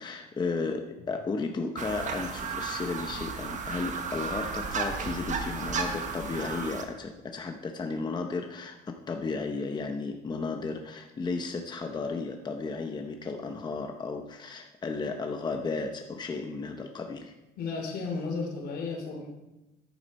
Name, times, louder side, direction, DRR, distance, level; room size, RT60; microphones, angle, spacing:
voice 1, 0.0-17.3, left 4 dB, 25° left, 4 dB, 0.8 m, -34 dB
sound 1, 1.8-6.8, right 5 dB, 45° right, 1.3 m, -34 dB
voice 2, 17.6-19.3, left 4 dB, 75° left, 2 dB, 2.8 m, -33 dB
10.5 x 8.8 x 4.2 m, 0.99 s
cardioid pair, 110°, 17 cm